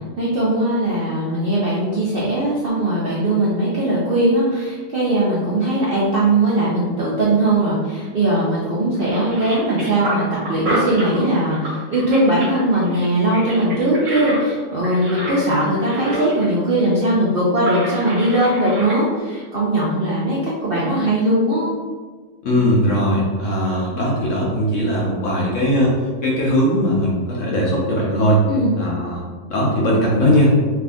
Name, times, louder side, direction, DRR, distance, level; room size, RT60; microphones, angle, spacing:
voice 1, 0.2-10.2 10.5-21.7 28.5-28.7, right 1 dB, 75° right, -6 dB, 0.5 m, -19 dB
sound 1, 8.4-8.6 8.9-16.5 16.8-16.9 17.5-19.0, right 1 dB, 55° right, 1.3 m, -29 dB
voice 2, 22.4-25.9 26.2-28.4 28.8-29.2 29.5-30.5, equal, 65° left, -4 dB, 0.8 m, -19 dB
3.4 x 2.5 x 3.5 m, 1.5 s
omnidirectional pair, 1.8 m